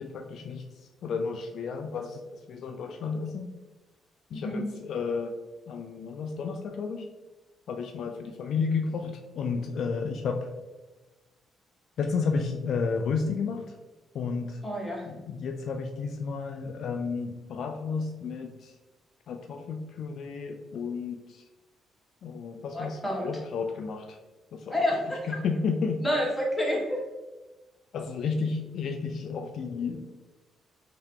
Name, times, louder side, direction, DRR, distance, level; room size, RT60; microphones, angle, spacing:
voice 1, 0.0-3.5 4.3-5.4 5.7-7.1 7.7-10.5 12.0-13.8 14.1-14.6 15.1-18.7 19.3-21.4 22.2-24.2 24.5-24.8 25.1-26.0 27.9-30.0, left 5 dB, 65° left, 4 dB, 0.3 m, -32 dB
voice 2, 4.3-4.6 14.6-15.1 22.7-23.3 24.7-25.3 26.0-27.0, equal, 15° left, -3 dB, 1.3 m, -29 dB
3.4 x 2.8 x 3.6 m, 1.2 s
cardioid pair, 90°, 0 cm